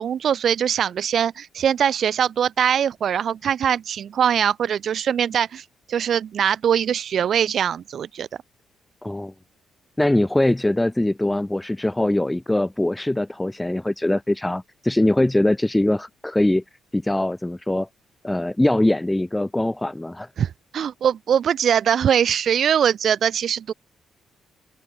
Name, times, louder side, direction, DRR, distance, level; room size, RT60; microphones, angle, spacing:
voice 1, 0.0-8.3 20.4-23.7, right 8 dB, 60° right, 3.8 m, -22 dB
voice 2, 9.0-9.3 10.0-16.6 16.9-17.9 18.2-20.3, left 1 dB, 10° left, 5.0 m, -22 dB
open air
cardioid pair, 90°, 0 cm